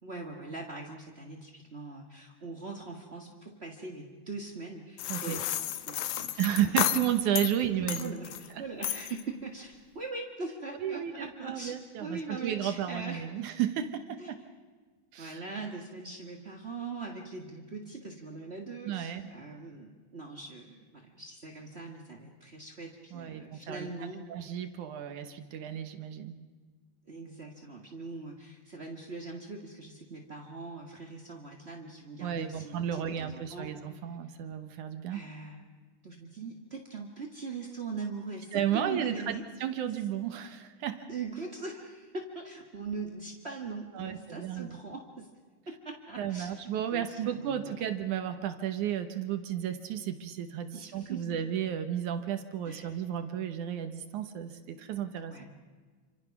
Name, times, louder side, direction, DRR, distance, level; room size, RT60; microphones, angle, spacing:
voice 1, 0.0-6.9 8.0-13.3 14.2-14.3 15.2-24.2 27.1-33.7 35.1-35.6 36.0-39.4 41.1-45.3 45.7-47.9 50.7-51.4 52.6-53.0 55.2-55.5, right 3 dB, 35° right, 0 dB, 1.0 m, -41 dB
sound 1, 5.0-7.5 7.9-8.5 8.8-9.2, left 12 dB, 90° left, 2.8 m, -32 dB
voice 2, 5.1-5.4 6.4-8.2 8.6-8.7 10.8-14.4 15.1-15.4 18.9-19.4 23.1-23.9 24.3-26.4 32.2-35.3 38.5-39.3 39.6-41.1 43.9-44.8 46.2-55.4, right 10 dB, 65° right, 9 dB, 2.3 m, -33 dB
28.0 x 26.0 x 6.0 m, 1.5 s
omnidirectional pair, 4.1 m